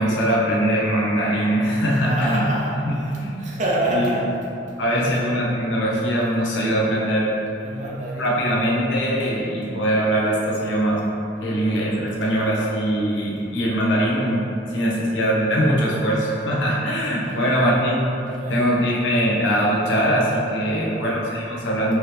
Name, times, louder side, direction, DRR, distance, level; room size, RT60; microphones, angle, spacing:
voice 1, 0.0-2.4 2.9-3.4 4.8-7.3 8.2-11.0 11.4-14.4 14.7-18.0 18.5-22.0, equal, 75° left, -4 dB, 0.8 m, -21 dB
sound 1, 0.6-3.6, equal, 20° left, 1.3 m, -36 dB
voice 2, 1.9-5.3 7.6-8.7 11.4-11.6 11.9-12.4 12.8-12.9 17.2-17.6 18.3-18.9 20.5-21.1 21.9-22.0, right 1 dB, 40° right, -4 dB, 0.6 m, -29 dB
4.6 x 2.9 x 3.3 m, 2.7 s
head